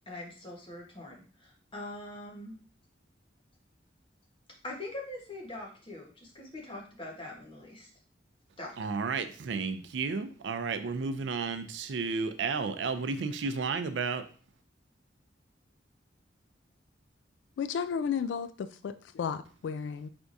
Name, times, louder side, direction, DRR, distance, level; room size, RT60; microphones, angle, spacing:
voice 1, 0.1-2.5 4.6-7.9 8.6-8.7, left 1 dB, 30° left, -3 dB, 1.3 m, -43 dB
voice 2, 8.8-14.2, right 4 dB, 80° right, 9 dB, 0.4 m, -32 dB
voice 3, 17.6-20.1, left 7 dB, 75° left, 11 dB, 0.3 m, -33 dB
4.6 x 3.5 x 2.6 m, 0.40 s
head